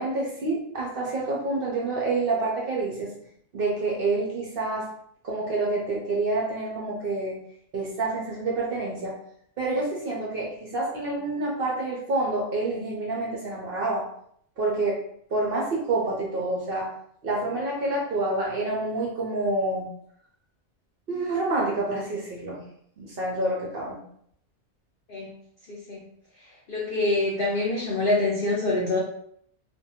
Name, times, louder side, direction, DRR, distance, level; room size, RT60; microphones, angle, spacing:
voice 1, 0.0-3.1 3.5-4.9 5.2-7.4 7.7-9.1 9.6-14.0 14.6-15.0 15.3-16.9 17.2-19.9 21.1-22.6 23.0-24.0, right 2 dB, 65° right, -3 dB, 0.5 m, -28 dB
voice 2, 25.7-26.0 26.7-29.0, left 2 dB, 75° left, -3 dB, 0.5 m, -25 dB
2.5 x 2.2 x 2.8 m, 0.68 s
omnidirectional pair, 1.5 m